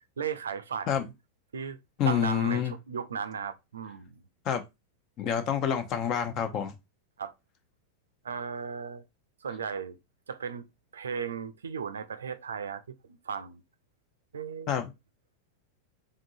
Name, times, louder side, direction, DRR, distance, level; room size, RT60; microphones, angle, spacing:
voice 1, 0.2-1.1 1.5-4.2 7.2-7.3 8.2-9.0 9.4-10.0 10.3-10.6 10.9-12.9 13.3-13.6 14.3-14.7, right 6 dB, 70° right, 0.4 m, -36 dB
voice 2, 2.0-2.7 4.5-4.6 5.2-6.7 14.7-14.9, left 8 dB, 35° left, 0.8 m, -27 dB
3.7 x 3.7 x 2.6 m
figure-of-eight pair, 90°, 0 cm